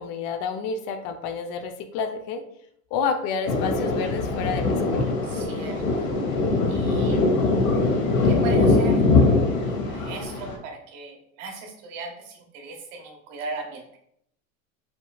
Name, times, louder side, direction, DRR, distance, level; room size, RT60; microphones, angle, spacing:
voice 1, 0.0-2.4 2.9-5.0, left 5 dB, 50° left, 7 dB, 0.7 m, -29 dB
Thunder, 3.5-10.5, left 3 dB, 90° left, 1.2 m, -22 dB
voice 2, 5.2-6.1 6.7-7.2 8.2-9.0 9.6-14.0, right 3 dB, 70° right, 2 dB, 1.3 m, -38 dB
4.9 x 3.7 x 2.3 m, 0.70 s
supercardioid pair, 120°, 40 cm